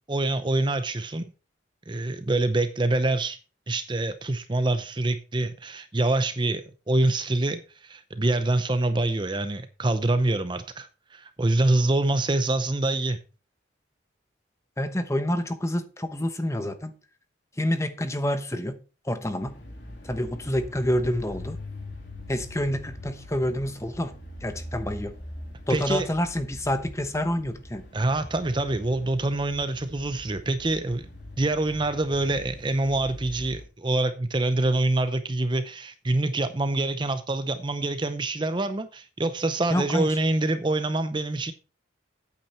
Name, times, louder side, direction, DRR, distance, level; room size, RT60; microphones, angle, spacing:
voice 1, 0.1-1.3 1.9-3.4 3.7-13.2 25.7-26.1 27.9-31.1 31.4-41.5, right 2 dB, 25° right, 0.6 m, -25 dB
voice 2, 14.8-16.9 17.6-18.8 19.0-19.5 20.0-21.6 22.3-24.1 24.4-25.1 25.7-27.8 39.7-40.1, equal, 15° left, 1.0 m, -28 dB
sound 1, 19.4-33.7, left 1 dB, 65° left, 3.0 m, -42 dB
8.8 x 8.7 x 4.3 m
head